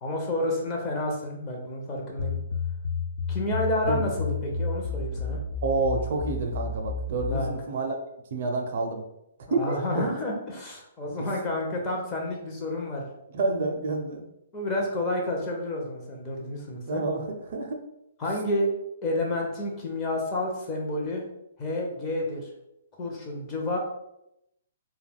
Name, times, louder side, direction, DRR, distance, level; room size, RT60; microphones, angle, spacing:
voice 1, 0.0-2.4 3.3-5.4 7.3-7.5 9.5-13.1 14.5-17.0 18.2-18.7 19.0-21.2 21.6-22.5 23.0-23.8, left 1 dB, 20° left, -1 dB, 0.5 m, -30 dB
sound 1, 2.2-7.5, left 4 dB, 70° left, 0.4 m, -31 dB
voice 2, 5.6-8.0 8.3-9.0 9.5-10.1 11.2-11.3 13.3-14.2 16.9-17.8, right 3 dB, 50° right, 3 dB, 0.4 m, -28 dB
2.2 x 2.1 x 3.4 m, 0.83 s
hypercardioid pair, 160°, 0 cm